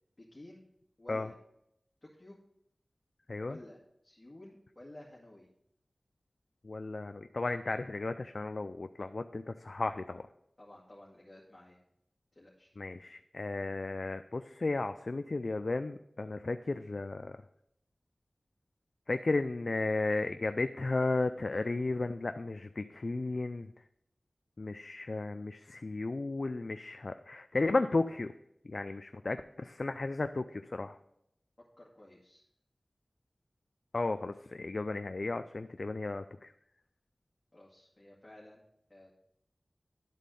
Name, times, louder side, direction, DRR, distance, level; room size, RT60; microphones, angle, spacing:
voice 1, 0.3-0.6 1.0-1.3 2.0-2.4 3.5-3.8 4.0-5.5 10.6-11.8 12.3-12.7 31.8-32.4 37.5-38.6 38.9-39.1, left 1 dB, 30° left, -6 dB, 1.9 m, -53 dB
voice 2, 6.6-10.2 12.8-17.4 19.1-23.7 24.6-28.3 28.7-30.9 33.9-36.5, left 3 dB, 65° left, 9 dB, 0.3 m, -34 dB
11.0 x 4.2 x 5.3 m, 0.76 s
wide cardioid pair, 50°, 0 cm